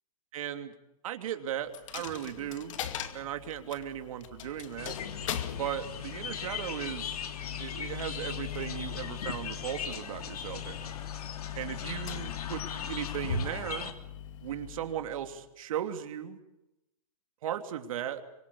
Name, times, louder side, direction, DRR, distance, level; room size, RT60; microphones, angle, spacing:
voice 1, 0.3-0.7 1.0-2.8 3.1-5.0 5.6-7.2 7.6-10.9 11.5-13.9 14.4-16.4 17.4-18.2, right 10 dB, 60° right, 7 dB, 2.9 m, -37 dB
Coin (dropping), 1.7-15.5, left 8 dB, 55° left, 2.4 m, -40 dB
sound 1, 4.8-13.9, left 7 dB, 70° left, 3.1 m, -40 dB
25.0 x 23.5 x 7.0 m, 0.92 s
hypercardioid pair, 155°, 20 cm